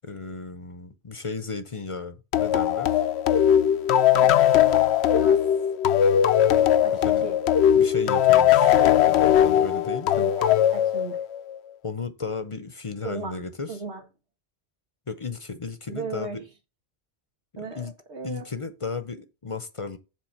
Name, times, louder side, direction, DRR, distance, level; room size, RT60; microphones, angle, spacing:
voice 1, 0.0-3.0 6.9-7.3 7.7-10.2 11.8-13.8 15.1-16.4 17.6-17.9 18.2-20.0, left 4 dB, 35° left, 0.7 m, -35 dB
sound 1, 2.3-11.6, left 10 dB, 75° left, 0.9 m, -19 dB
voice 2, 4.1-4.7 5.2-5.4 6.8-7.4 10.2-11.2 13.0-13.4 13.7-14.0 15.9-16.4 17.6-18.5, right 3 dB, 90° right, 1.9 m, -36 dB
7.6 x 4.1 x 5.5 m
omnidirectional pair, 1.1 m